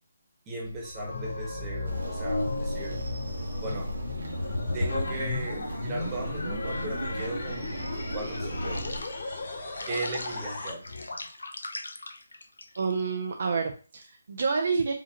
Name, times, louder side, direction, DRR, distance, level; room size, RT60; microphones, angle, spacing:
voice 1, 0.5-3.0 3.5-3.9 4.7-7.8 8.1-9.1 9.8-10.8, right 2 dB, 15° right, -2 dB, 1.2 m, -37 dB
sound 1, 0.6-10.7, left 3 dB, 50° left, 1.8 m, -38 dB
sound 2, 0.8-5.8 6.4-13.0, left 2 dB, 85° left, 0.7 m, -36 dB
sound 3, 1.8-9.0, equal, 75° right, 1.2 m, -36 dB
voice 2, 12.8-14.9, right 5 dB, 55° right, 3 dB, 0.5 m, -28 dB
4.8 x 2.8 x 2.9 m, 0.37 s
hypercardioid pair, 160°, 0 cm